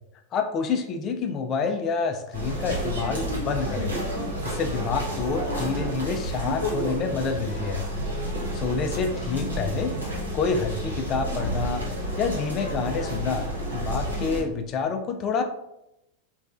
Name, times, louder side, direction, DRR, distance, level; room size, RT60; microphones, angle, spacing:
voice 1, 0.3-3.9 4.4-7.8 8.5-9.9 10.3-11.8 12.2-13.5 13.7-15.4, left 5 dB, 35° left, 5 dB, 0.3 m, -28 dB
sound 1, 2.3-14.4, equal, 90° right, 0.8 m, -30 dB
2.8 x 2.2 x 2.4 m, 0.86 s
figure-of-eight pair, 90°, 0 cm